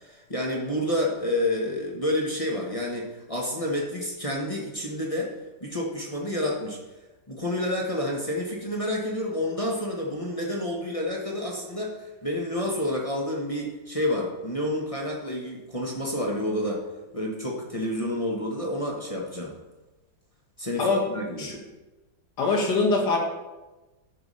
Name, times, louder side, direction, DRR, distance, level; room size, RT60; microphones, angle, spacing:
voice 1, 0.0-5.3 5.6-6.8 7.3-16.8 17.1-19.5 20.6-21.5, left 1 dB, 20° left, -2 dB, 1.0 m, -29 dB
voice 2, 22.4-23.2, left 3 dB, 65° left, 1 dB, 2.2 m, -23 dB
11.5 x 4.8 x 5.5 m, 1.1 s
omnidirectional pair, 2.0 m